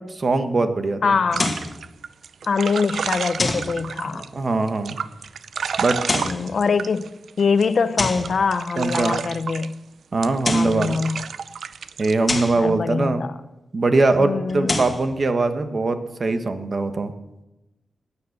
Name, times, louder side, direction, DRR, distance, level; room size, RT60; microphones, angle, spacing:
voice 1, 0.2-1.1 4.1-5.0 5.8-6.0 8.8-9.1 10.1-11.0 12.0-13.2 13.7-17.1, right 3 dB, 40° right, 9 dB, 1.1 m, -21 dB
voice 2, 1.0-1.6 2.5-4.3 6.2-9.7 10.5-11.2 12.6-13.3 14.2-14.8, left 5 dB, 55° left, 12 dB, 0.7 m, -23 dB
sound 1, 1.3-1.7 3.4-3.7 5.9-6.4 8.0-8.3 10.2-10.8 12.3-12.6 14.5-15.0, left 2 dB, 25° left, 1.8 m, -25 dB
sound 2, 1.3-4.3 4.7-7.7 8.1-9.7 10.2-12.1, right 6 dB, 75° right, 0.5 m, -31 dB
15.5 x 9.9 x 6.6 m, 0.97 s
wide cardioid pair, 135°, 0 cm